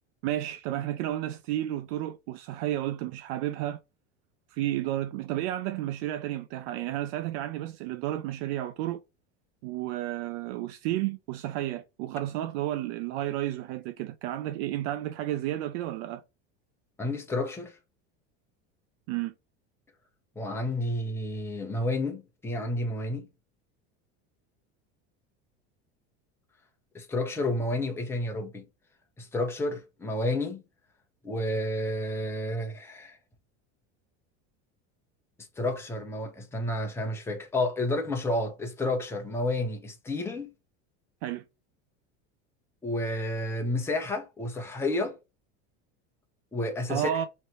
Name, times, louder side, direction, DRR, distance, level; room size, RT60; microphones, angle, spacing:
voice 1, 0.2-3.8 4.5-9.0 9.6-16.2 19.1-19.3 41.2-41.4 46.9-47.3, right 13 dB, 75° right, 0.5 m, -32 dB
voice 2, 17.0-17.7 20.4-23.3 26.9-28.7 29.2-30.6 31.2-33.2 35.6-40.5 42.8-45.2 46.5-47.1, left 1 dB, 10° left, 0.8 m, -30 dB
3.2 x 2.9 x 4.2 m
cardioid pair, 150°, 32 cm